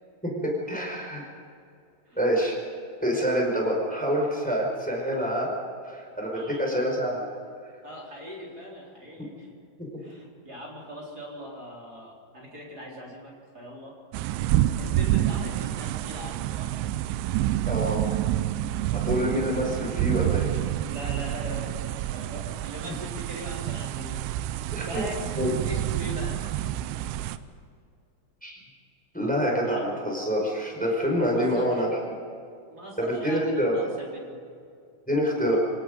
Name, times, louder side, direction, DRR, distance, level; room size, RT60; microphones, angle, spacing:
voice 1, 0.2-1.2 2.2-2.6 3.0-5.5 5.8-7.3 17.6-18.0 18.9-20.5 24.7-25.0 25.4-25.5 28.4-28.6 29.1-31.9 33.0-33.9 35.1-35.6, equal, ahead, -1 dB, 4.3 m, -26 dB
voice 2, 6.3-6.8 7.8-9.5 10.0-14.0 14.8-16.8 18.6-18.8 20.9-25.3 25.7-26.7 27.0-27.3 29.6-29.8 31.3-31.8 32.7-34.4, equal, 20° right, -3 dB, 3.5 m, -41 dB
sound 1, 14.1-27.4, right 13 dB, 80° right, 2.9 m, -28 dB
27.5 x 18.0 x 5.2 m, 2.3 s
omnidirectional pair, 5.9 m